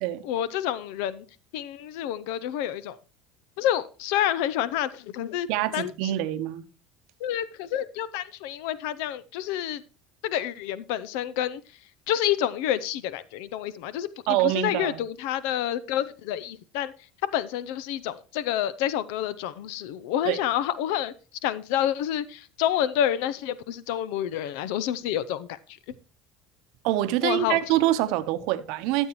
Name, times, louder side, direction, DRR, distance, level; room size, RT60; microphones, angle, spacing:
voice 1, 0.2-1.2 1.5-3.0 3.6-5.5 5.7-5.9 7.2-9.8 10.2-11.6 12.1-16.9 17.2-21.1 21.4-25.5 27.2-27.6, left 11 dB, 75° left, 0.5 m, -28 dB
voice 2, 5.5-6.6 14.3-15.0 20.3-20.4 26.8-29.1, right 14 dB, 70° right, 0.7 m, -25 dB
13.5 x 7.1 x 3.0 m
cardioid pair, 135°, 0 cm